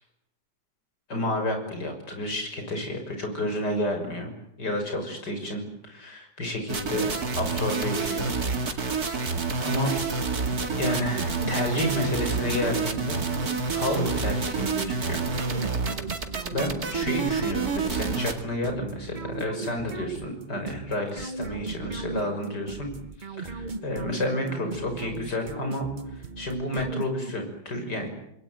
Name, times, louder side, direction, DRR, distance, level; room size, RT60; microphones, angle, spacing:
voice 1, 1.1-4.3 4.6-8.3 8.7-9.9 10.8-13.2 13.7-15.2 16.5-22.9 23.3-28.1, left 1 dB, 80° left, 5 dB, 6.6 m, -30 dB
sound 1, 6.7-18.4, right 4 dB, 65° right, 2.8 m, -28 dB
sound 2, 10.0-27.5, right 4 dB, 30° right, 1.1 m, -38 dB
27.5 x 21.5 x 9.2 m, 0.80 s
omnidirectional pair, 1.8 m